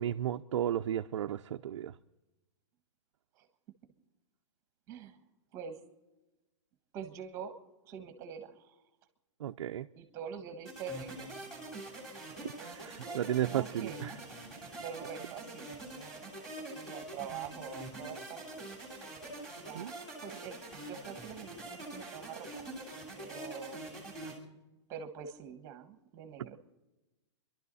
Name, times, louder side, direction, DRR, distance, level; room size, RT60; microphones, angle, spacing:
voice 1, 0.0-1.9 9.4-9.9 12.6-14.1 19.7-19.9 24.2-24.3, right 11 dB, 85° right, 0.6 m, -34 dB
voice 2, 4.9-5.2 5.5-5.8 6.9-7.5 7.8-8.8 9.9-11.3 12.3-14.0 14.8-16.3 16.7-18.6 19.6-19.9 20.2-22.6 23.2-23.8 24.9-26.6, right 7 dB, 20° right, 1.4 m, -45 dB
sound 1, 10.7-24.4, right 2 dB, 5° left, 2.9 m, -45 dB
28.5 x 12.0 x 4.1 m
supercardioid pair, 180°, 15 cm